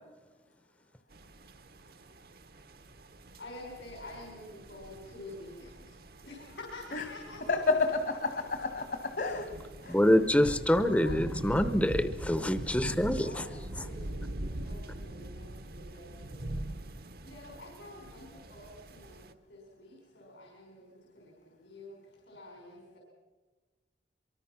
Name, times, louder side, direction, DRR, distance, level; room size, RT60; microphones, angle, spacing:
sound 1, 1.1-19.3, right 1 dB, 55° right, 1.0 m, -42 dB
voice 1, 3.4-5.9 6.2-7.6 10.4-12.0 13.2-13.5 13.8-16.6 17.2-19.2 19.5-21.3 21.6-22.0 22.3-23.0, left 2 dB, 85° left, -1 dB, 5.4 m, -48 dB
voice 2, 7.5-10.0, left 3 dB, 60° left, 6 dB, 1.6 m, -31 dB
voice 3, 9.9-13.4, left 1 dB, 5° left, 10 dB, 0.8 m, -26 dB
24.0 x 23.0 x 5.9 m, 1.3 s
head